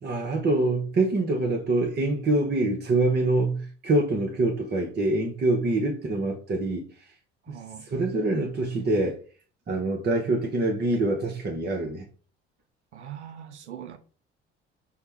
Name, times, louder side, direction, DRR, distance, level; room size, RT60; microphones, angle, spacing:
voice 1, 0.0-7.1 7.5-9.2 9.7-12.1, right 2 dB, 30° right, 0.8 m, -25 dB
voice 2, 7.4-7.9 12.9-14.0, right 9 dB, 85° right, 0.5 m, -41 dB
5.5 x 2.1 x 3.3 m
figure-of-eight pair, 55°, 33 cm